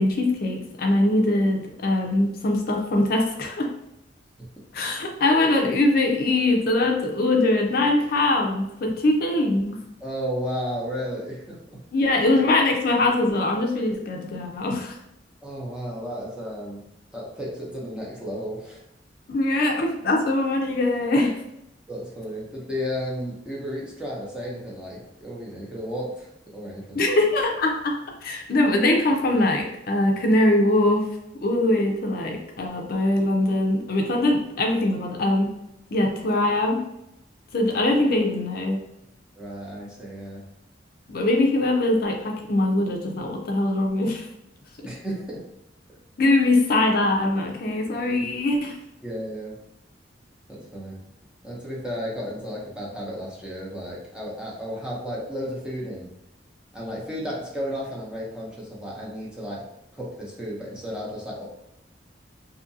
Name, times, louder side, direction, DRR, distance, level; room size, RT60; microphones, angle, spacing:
voice 1, 0.0-3.7 4.7-9.8 11.9-15.0 19.3-21.4 26.9-31.1 31.4-35.5 35.9-36.8 37.5-38.8 41.1-44.3 46.2-48.8, left 2 dB, 55° left, 2 dB, 0.4 m, -22 dB
voice 2, 10.0-11.8 15.4-18.8 21.9-27.0 39.4-40.5 44.8-45.4 49.0-49.6 50.5-51.0 51.4-56.1 56.7-61.5, equal, 5° right, -5 dB, 0.7 m, -33 dB
2.7 x 2.5 x 2.6 m, 0.82 s
head